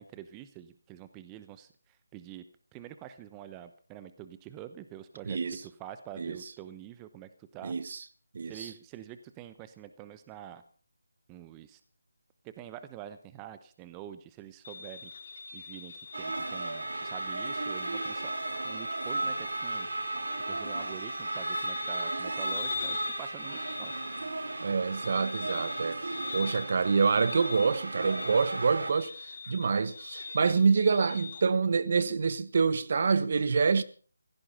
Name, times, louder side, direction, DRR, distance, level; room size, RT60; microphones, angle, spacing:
voice 1, 0.0-1.7 2.1-2.4 2.7-7.7 8.5-10.6 11.3-11.8 12.4-15.1 15.5-18.3 18.6-19.9 20.5-23.9 30.4-30.7, right 11 dB, 15° right, 0.9 m, -46 dB
voice 2, 5.3-5.6 6.2-6.4 7.6-8.0 8.3-8.7 24.6-33.8, right 5 dB, 50° right, 1.1 m, -27 dB
sound 1, 14.6-31.4, left 5 dB, 50° left, 5.4 m, -43 dB
sound 2, 16.1-28.9, right 2 dB, 75° right, 2.8 m, -35 dB
16.5 x 14.0 x 5.7 m
figure-of-eight pair, 160°, 0 cm